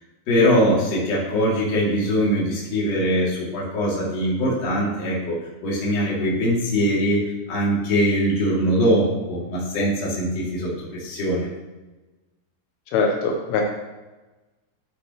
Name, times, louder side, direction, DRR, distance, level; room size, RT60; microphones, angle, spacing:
voice 1, 0.3-5.4 5.6-11.5, equal, 40° left, -6 dB, 3.0 m, -22 dB
voice 2, 12.9-13.6, left 4 dB, 80° left, 1 dB, 3.3 m, -22 dB
12.5 x 8.2 x 3.1 m, 1.1 s
omnidirectional pair, 5.9 m